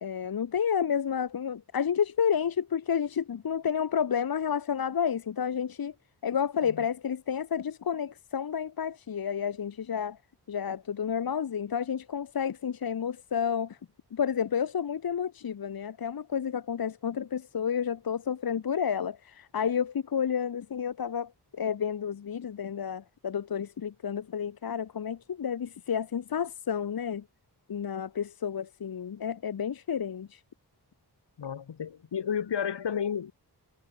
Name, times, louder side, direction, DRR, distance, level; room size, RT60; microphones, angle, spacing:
voice 1, 0.0-5.9 6.2-10.2 10.5-13.8 14.1-27.2 27.7-30.4, left 7 dB, 60° left, 1.1 m, -30 dB
voice 2, 31.4-33.3, left 8 dB, 90° left, 2.4 m, -32 dB
wide cardioid pair, 105°, 41 cm